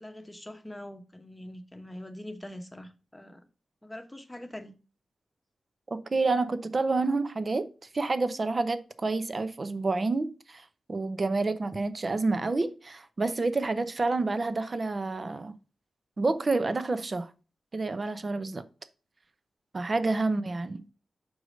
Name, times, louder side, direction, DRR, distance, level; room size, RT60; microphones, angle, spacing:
voice 1, 0.0-3.4 3.8-4.7, left 1 dB, 10° left, 1.0 m, -43 dB
voice 2, 5.9-7.7 7.9-15.5 16.2-17.3 17.7-18.6 19.7-20.8, right 3 dB, 35° right, 0.7 m, -29 dB
6.4 x 4.8 x 5.1 m
wide cardioid pair, 125°, 0 cm